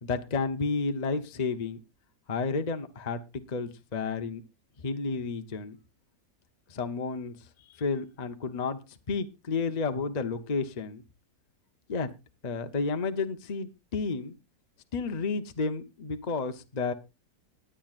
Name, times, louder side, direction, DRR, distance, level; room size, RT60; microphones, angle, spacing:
voice 1, 0.0-1.8 2.3-4.4 4.8-5.8 6.7-11.0 11.9-12.1 12.4-14.3 14.9-16.9, left 4 dB, 30° left, 0.9 m, -31 dB
20.0 x 9.1 x 2.5 m
omnidirectional pair, 1.7 m